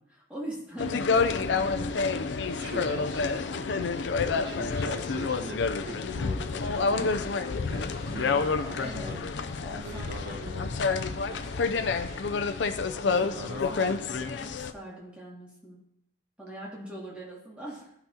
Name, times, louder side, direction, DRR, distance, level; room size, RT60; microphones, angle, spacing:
voice 1, 0.1-2.1 8.2-9.3 9.6-10.6 11.1-12.0 12.9-13.9 14.4-15.8 16.4-17.9, right 1 dB, 5° right, -6 dB, 2.3 m, -43 dB
sound 1, 0.8-14.7, left 4 dB, 80° left, 0.5 m, -29 dB
voice 2, 2.5-4.0 4.3-7.0 7.7-9.2 9.8-10.8 13.0-14.3, right 1 dB, 65° right, 0 dB, 1.4 m, -41 dB
sound 2, 6.5-12.3, left 1 dB, 50° left, 1.3 m, -45 dB
15.0 x 5.8 x 2.9 m, 0.77 s
head